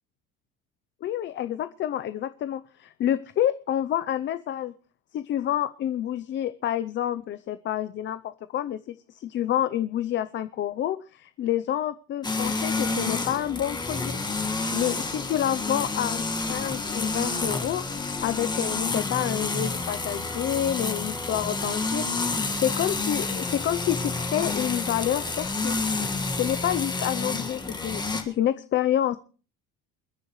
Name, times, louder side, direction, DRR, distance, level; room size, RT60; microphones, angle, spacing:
voice 1, 1.0-4.7 5.1-14.2 14.7-17.8 18.2-25.8 26.4-29.2, left 11 dB, 35° left, 13 dB, 0.6 m, -28 dB
sound 1, 12.2-28.2, left 3 dB, 10° left, 1.7 m, -29 dB
29.0 x 10.5 x 3.1 m, 0.38 s
cardioid pair, 175°, 33 cm